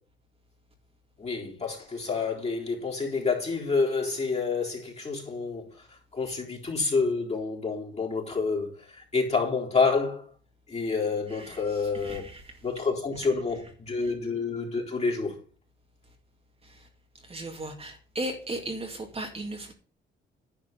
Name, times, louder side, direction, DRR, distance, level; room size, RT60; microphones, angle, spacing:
voice 1, 1.2-5.8 6.1-10.2 10.7-12.3 12.6-15.3, left 4 dB, 35° left, 4.0 m, -28 dB
voice 2, 11.3-12.5 14.0-14.1 16.6-16.9 17.3-19.7, right 1 dB, 30° right, 2.2 m, -37 dB
10.5 x 4.8 x 6.8 m
cardioid pair, 90°, 20 cm